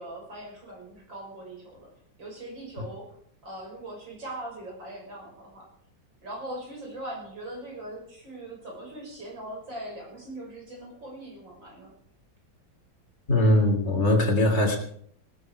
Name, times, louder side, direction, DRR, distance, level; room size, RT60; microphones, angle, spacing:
voice 1, 0.0-1.9 2.2-3.1 3.4-5.7 6.2-11.9, right 1 dB, 80° right, -1 dB, 7.1 m, -40 dB
voice 2, 13.3-14.8, left 1 dB, 35° left, 2 dB, 3.5 m, -21 dB
19.0 x 13.5 x 4.8 m, 0.63 s
omnidirectional pair, 2.0 m